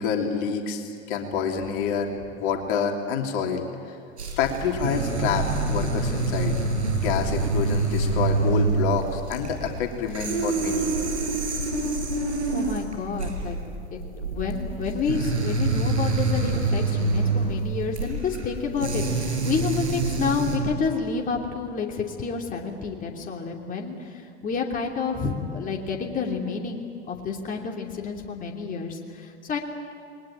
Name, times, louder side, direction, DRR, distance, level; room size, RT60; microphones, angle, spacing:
voice 1, 0.0-3.6 4.4-6.5 7.0-11.1, left 6 dB, 50° left, 3 dB, 3.1 m, -27 dB
sound 1, 4.2-20.6, right 3 dB, 80° right, 5.7 m, -26 dB
voice 2, 12.5-13.6 13.9-29.6, left 5 dB, 25° left, 1 dB, 3.0 m, -29 dB
28.5 x 21.5 x 9.1 m, 2.6 s
figure-of-eight pair, 90°, 34 cm